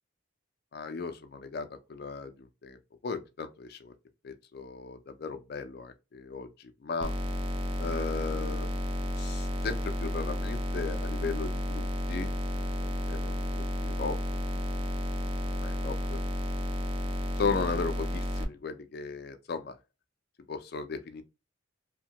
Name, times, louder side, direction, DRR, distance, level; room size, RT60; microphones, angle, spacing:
voice 1, 0.7-2.8 3.0-3.9 4.2-6.5 6.8-7.1 7.8-8.7 9.2-12.7 13.1-14.2 15.6-16.2 17.4-19.8 20.5-21.2, left 4 dB, 50° left, 0.4 m, -36 dB
sound 1, 7.0-18.4, left 1 dB, 25° right, 0.3 m, -32 dB
2.7 x 2.2 x 2.8 m
head